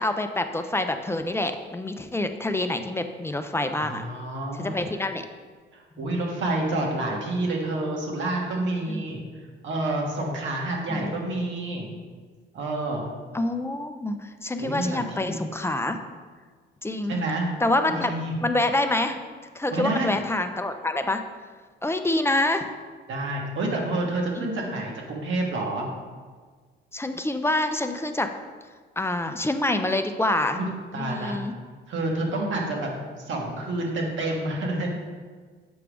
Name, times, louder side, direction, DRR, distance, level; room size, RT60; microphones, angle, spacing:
voice 1, 0.0-4.0 4.6-5.2 6.0-6.1 8.9-9.0 10.9-11.2 13.3-16.0 16.8-17.2 17.6-18.1 18.4-19.2 19.5-21.2 21.8-22.7 24.4-24.8 26.9-28.3 29.0-30.7 31.0-31.5, left 2 dB, 10° left, 7 dB, 0.4 m, -26 dB
voice 2, 3.8-4.8 5.7-9.2 9.6-11.9 12.5-13.0 14.6-15.5 17.1-17.5 17.9-18.3 19.7-20.2 23.1-25.9 30.5-30.7 30.9-31.4 31.9-32.9 33.2-34.9, right 2 dB, 75° right, -1 dB, 1.4 m, -28 dB
7.0 x 4.9 x 3.4 m, 1.5 s
cardioid pair, 90°, 20 cm